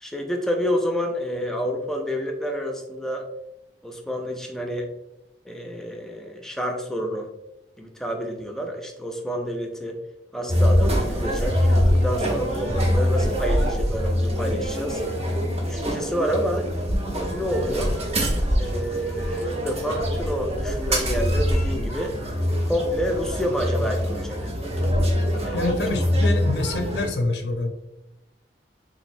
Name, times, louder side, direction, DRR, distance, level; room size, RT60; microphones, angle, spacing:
voice 1, 0.0-3.3 3.8-4.9 5.4-7.3 7.8-10.0 10.3-15.0 15.6-16.7 17.2-18.0 18.6-22.1 22.6-24.5 25.4-25.7, equal, 5° left, 2 dB, 0.4 m, -28 dB
sound 1, 10.5-27.1, equal, 40° right, 0.7 m, -24 dB
voice 2, 25.5-27.7, left 2 dB, 70° left, 4 dB, 0.5 m, -26 dB
3.8 x 3.0 x 2.5 m, 0.93 s
head